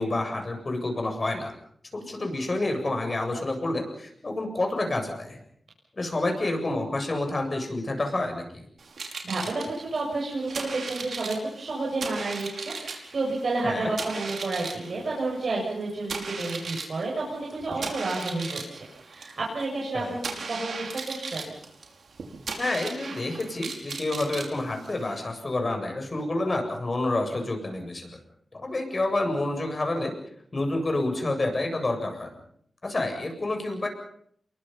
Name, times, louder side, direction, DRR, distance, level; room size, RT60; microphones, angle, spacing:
voice 1, 0.0-1.5 1.9-5.4 5.9-8.6 13.6-13.9 17.8-17.9 19.9-20.1 22.6-28.1 28.5-30.1 30.5-32.4 32.8-33.9, left 2 dB, 40° left, 4 dB, 7.7 m, -28 dB
sound 1, 8.8-25.2, right 4 dB, 80° right, 5.2 m, -37 dB
voice 2, 9.2-21.5, right 2 dB, 60° right, -3 dB, 7.4 m, -31 dB
29.0 x 23.5 x 5.8 m, 0.65 s
wide cardioid pair, 90°, 0 cm